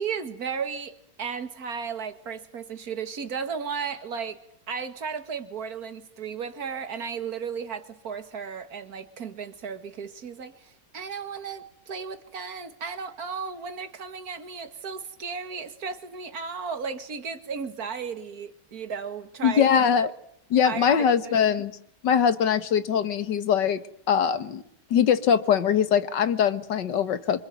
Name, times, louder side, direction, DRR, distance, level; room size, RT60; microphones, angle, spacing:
voice 1, 0.0-4.4 4.7-19.7 20.6-20.9 21.2-21.4, right 6 dB, 55° right, 9 dB, 2.4 m, -34 dB
voice 2, 19.4-20.1 20.5-21.7 22.0-23.8 24.1-24.6 24.9-27.4, left 8 dB, 75° left, 13 dB, 2.0 m, -22 dB
26.0 x 24.5 x 9.3 m, 0.69 s
omnidirectional pair, 1.9 m